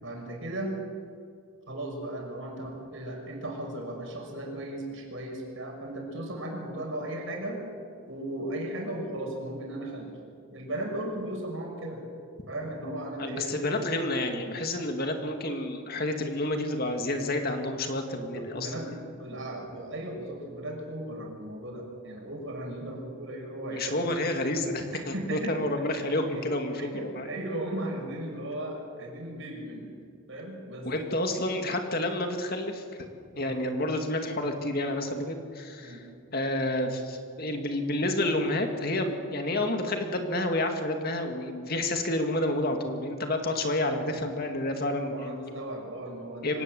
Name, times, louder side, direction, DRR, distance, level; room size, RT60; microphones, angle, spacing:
voice 1, 0.0-0.8 1.7-7.6 8.1-10.1 10.5-12.0 12.5-13.6 18.3-24.0 24.8-25.6 25.9-26.5 26.8-29.9 30.3-30.9 33.3-33.5 35.8-36.0 45.1-46.6, right 1 dB, 60° right, 0 dB, 6.2 m, -36 dB
voice 2, 13.2-18.7 23.7-27.3 30.9-32.8 33.4-45.5 46.4-46.6, left 1 dB, 45° left, 4 dB, 2.2 m, -29 dB
25.0 x 18.5 x 7.8 m, 2.3 s
head